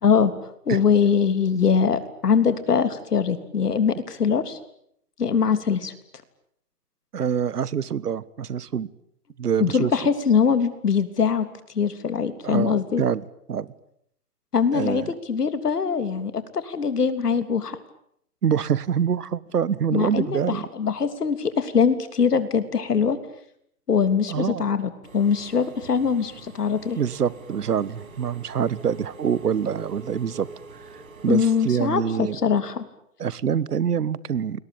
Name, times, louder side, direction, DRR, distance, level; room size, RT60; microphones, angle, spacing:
voice 1, 0.7-4.6 5.2-5.9 9.6-11.5 11.7-13.0 14.5-17.8 19.9-23.2 23.9-27.0 31.3-32.8, left 6 dB, 85° left, 11 dB, 3.4 m, -22 dB
voice 2, 7.1-8.9 9.4-9.9 12.4-13.7 14.7-15.1 18.4-20.7 24.3-24.6 27.0-30.5 30.9-31.0 31.2-32.4 33.2-34.6, right 8 dB, 85° right, 20 dB, 1.5 m, -25 dB
Engine / Mechanisms, 25.0-31.9, right 3 dB, 65° right, 7.0 m, -45 dB
29.0 x 21.5 x 9.0 m, 0.73 s
hypercardioid pair, 170°, 46 cm